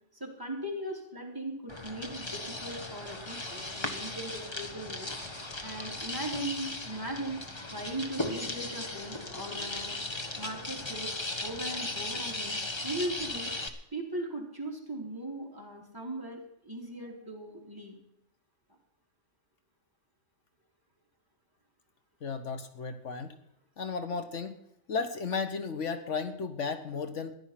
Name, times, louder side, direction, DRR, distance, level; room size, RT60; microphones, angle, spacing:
voice 1, 0.1-5.1 5.6-7.4 7.7-10.0 10.4-11.1 11.4-12.6 12.8-13.5 13.9-18.0, right 1 dB, 15° right, -1 dB, 3.3 m, -38 dB
sound 1, 1.7-13.7, left 2 dB, 25° left, 1.2 m, -37 dB
voice 2, 22.2-23.4 23.8-24.5 24.9-27.3, left 5 dB, 75° left, 9 dB, 1.5 m, -34 dB
14.5 x 11.0 x 5.9 m, 0.77 s
omnidirectional pair, 1.2 m